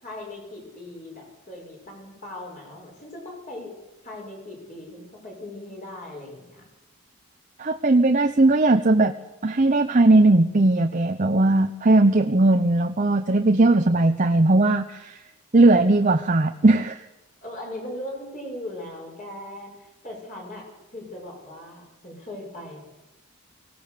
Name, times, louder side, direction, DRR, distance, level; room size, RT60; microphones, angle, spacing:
voice 1, 0.0-3.7 4.0-6.6 17.4-20.7 20.9-22.8, left 1 dB, 35° left, -1 dB, 6.5 m, -39 dB
voice 2, 7.6-9.1 9.4-15.2 15.5-17.0, right 2 dB, 35° right, 6 dB, 0.8 m, -18 dB
24.0 x 17.5 x 6.7 m, 1.1 s
head